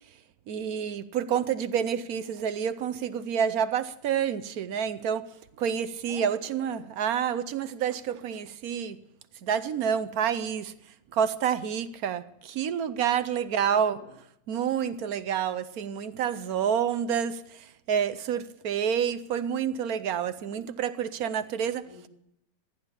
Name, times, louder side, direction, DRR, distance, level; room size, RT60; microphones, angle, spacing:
voice 1, 0.5-5.3 5.6-9.0 9.4-10.7 11.1-14.0 14.5-21.8, right 8 dB, 75° right, 1.2 m, -28 dB
voice 2, 6.0-6.9 13.4-14.1 20.5-20.6 21.8-22.1, left 1 dB, 55° left, 4.7 m, -50 dB
15.0 x 10.5 x 7.1 m
omnidirectional pair, 1.6 m